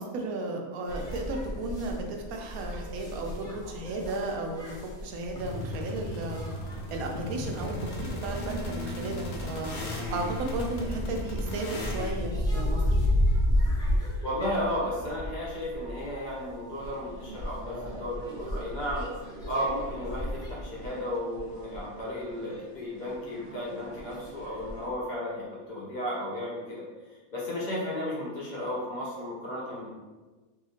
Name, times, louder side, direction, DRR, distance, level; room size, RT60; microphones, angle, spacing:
voice 1, 0.0-6.5 6.9-9.8 10.1-13.0, right 2 dB, 80° right, 2 dB, 1.0 m, -34 dB
sound 1, 0.9-20.5, left 1 dB, 5° left, 0.5 m, -33 dB
sound 2, 5.4-12.1, left 1 dB, 60° left, 0.7 m, -36 dB
voice 2, 14.2-19.1 19.4-26.9 27.3-29.9, left 1 dB, 35° left, -6 dB, 1.0 m, -34 dB
sound 3, 16.8-24.9, equal, 35° right, 0.6 m, -46 dB
3.4 x 2.8 x 2.8 m, 1.2 s
omnidirectional pair, 1.5 m